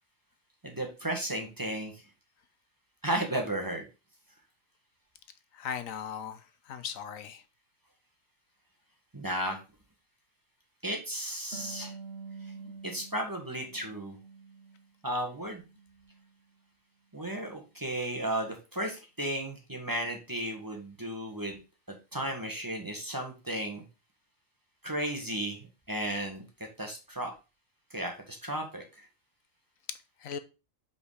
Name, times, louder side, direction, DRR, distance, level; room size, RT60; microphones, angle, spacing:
voice 1, 0.6-2.0 3.0-3.8 9.1-9.6 10.8-11.9 12.8-14.2 15.0-15.6 17.1-21.6 22.1-23.8 24.8-26.4 26.8-27.3 27.9-28.8, right 1 dB, 15° right, 2 dB, 1.4 m, -34 dB
voice 2, 5.6-6.4 6.7-7.4 30.2-30.4, left 8 dB, 85° left, 11 dB, 1.2 m, -37 dB
Harp, 11.5-14.9 15.3-16.3, right 5 dB, 50° right, 1.3 m, -47 dB
5.3 x 5.1 x 4.8 m, 0.29 s
omnidirectional pair, 1.4 m